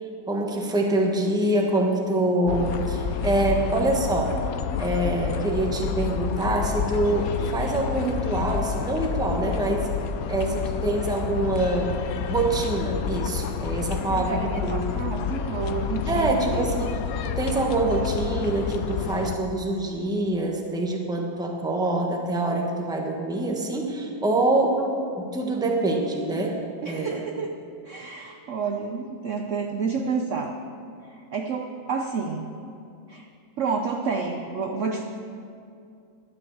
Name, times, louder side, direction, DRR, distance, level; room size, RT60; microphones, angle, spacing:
voice 1, 0.3-4.3 4.8-9.9 10.3-12.0 12.3-14.8 16.1-17.0 17.2-24.8 25.2-26.6 26.8-27.3, right 2 dB, 5° right, 1 dB, 0.8 m, -25 dB
sound 1, 2.5-19.4, left 7 dB, 80° left, 0.8 m, -29 dB
voice 2, 14.1-16.7 26.8-27.6 27.8-30.6 31.0-32.6 33.1-33.3 33.6-35.0, right 5 dB, 75° right, 3 dB, 0.7 m, -30 dB
12.0 x 7.8 x 7.2 m, 2.5 s
omnidirectional pair, 2.2 m